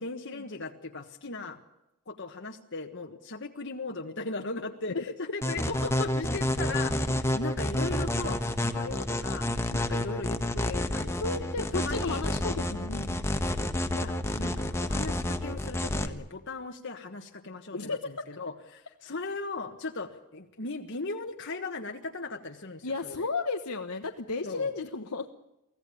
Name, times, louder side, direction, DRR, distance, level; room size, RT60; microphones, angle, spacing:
voice 1, 0.0-1.6 2.1-9.5 9.8-12.2 13.9-23.3 24.4-24.7, left 3 dB, 55° left, 4 dB, 1.5 m, -38 dB
sound 1, 5.4-16.1, left 1 dB, 10° left, 1.3 m, -29 dB
voice 2, 11.2-13.4 17.7-18.0 22.8-25.3, left 3 dB, 85° left, 4 dB, 1.3 m, -33 dB
24.0 x 16.5 x 8.6 m, 0.91 s
head